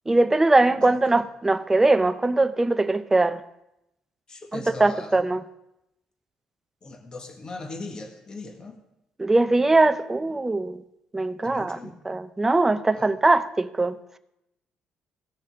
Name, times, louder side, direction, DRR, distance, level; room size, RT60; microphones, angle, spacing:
voice 1, 0.1-3.4 4.5-5.4 9.2-10.8 11.1-11.8 12.1-14.2, right 2 dB, 15° right, 0.6 m, -21 dB
voice 2, 0.8-1.2 4.3-5.2 6.8-8.8 11.4-12.0 12.9-13.2, left 3 dB, 35° left, 1.6 m, -39 dB
18.0 x 6.7 x 3.6 m
cardioid pair, 100°, 2 cm